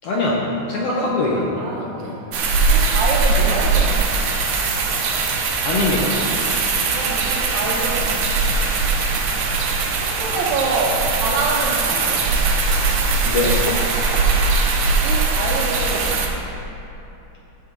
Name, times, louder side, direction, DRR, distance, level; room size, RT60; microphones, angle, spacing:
voice 1, 0.0-0.4 0.7-1.7 2.0-2.2 5.6-6.2 13.2-13.6, left 3 dB, 70° left, -4 dB, 1.5 m, -22 dB
voice 2, 1.6-2.2 2.7-4.2 6.9-8.2 10.0-12.3 15.0-16.2, right 3 dB, 70° right, -1 dB, 2.1 m, -26 dB
sound 1, 2.3-16.3, right 4 dB, 90° right, 1.2 m, -20 dB
14.5 x 5.0 x 3.9 m, 3.0 s
omnidirectional pair, 3.6 m